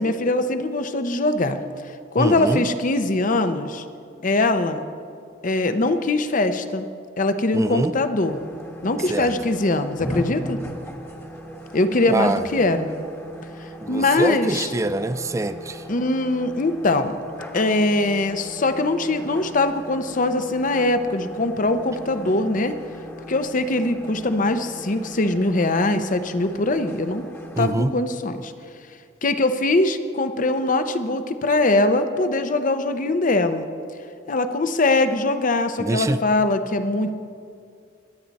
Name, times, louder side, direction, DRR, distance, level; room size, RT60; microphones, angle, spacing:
voice 1, 0.0-1.6 2.1-3.8 4.2-4.8 5.4-6.9 7.2-8.4 8.8-10.6 11.7-12.9 13.6-14.7 15.9-17.2 17.5-22.8 23.3-27.2 27.6-28.5 29.2-33.7 34.3-37.1, left 2 dB, 45° left, 10 dB, 0.7 m, -22 dB
voice 2, 2.2-2.6 7.5-8.0 9.1-9.3 12.1-12.4 13.8-15.9 27.6-27.9 35.8-36.2, right 2 dB, 15° right, 12 dB, 0.4 m, -24 dB
sound 1, 8.2-27.7, equal, 15° left, 1.2 m, -38 dB
23.0 x 9.7 x 4.1 m, 2.4 s
head